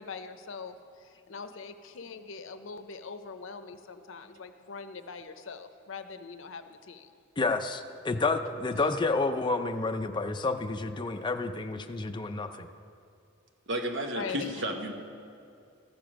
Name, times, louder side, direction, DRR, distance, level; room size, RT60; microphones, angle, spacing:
voice 1, 0.0-7.1 14.1-14.5, left 5 dB, 65° left, 9 dB, 0.7 m, -42 dB
voice 2, 7.4-12.7, left 3 dB, 25° left, 6 dB, 0.5 m, -30 dB
voice 3, 13.7-14.9, right 1 dB, 65° right, 4 dB, 1.1 m, -32 dB
14.0 x 6.9 x 6.2 m, 2.5 s
head